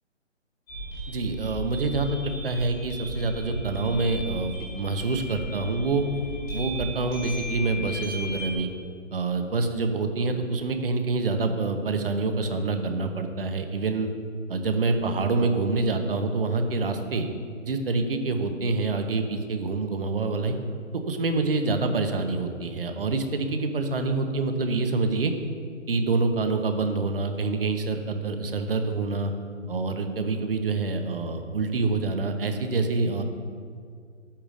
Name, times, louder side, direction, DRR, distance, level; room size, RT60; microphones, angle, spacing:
sound 1, 0.7-8.5, right 1 dB, 15° left, 1.8 m, -35 dB
voice 1, 1.1-6.0 6.5-8.7 9.1-14.1 14.5-17.3 17.6-20.5 21.1-25.3 25.9-29.3 29.7-33.2, right 3 dB, 45° right, 6 dB, 0.9 m, -26 dB
12.0 x 8.6 x 2.5 m, 2.1 s
hypercardioid pair, 165°, 38 cm